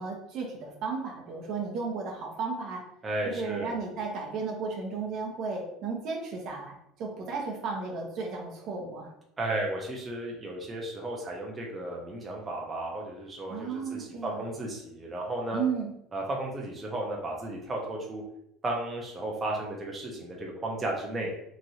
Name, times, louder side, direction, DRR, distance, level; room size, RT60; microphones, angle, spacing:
voice 1, 0.0-2.8 3.2-9.1 13.5-14.4 15.5-15.9, right 4 dB, 55° right, 0 dB, 0.7 m, -34 dB
voice 2, 3.0-3.8 9.4-15.6 16.1-18.2 18.6-21.3, right 1 dB, 20° right, -2 dB, 0.6 m, -34 dB
3.0 x 2.5 x 2.7 m, 0.79 s
supercardioid pair, 120°, 0 cm